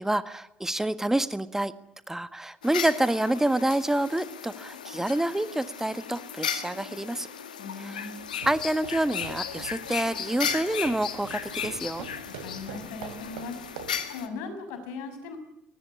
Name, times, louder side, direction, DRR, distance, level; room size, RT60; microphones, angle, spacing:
voice 1, 0.0-1.7 2.1-7.3 7.8-8.1 8.4-12.1, right 1 dB, 10° right, 13 dB, 1.5 m, -28 dB
sound 1, 2.6-14.3, left 8 dB, 90° left, 1.9 m, -36 dB
voice 2, 7.6-8.1 12.3-13.6 14.1-15.4, left 4 dB, 70° left, 8 dB, 6.1 m, -38 dB
sound 2, 8.2-14.1, right 8 dB, 75° right, 3.2 m, -45 dB
23.0 x 20.0 x 10.0 m, 0.85 s
hypercardioid pair, 55°, 4 cm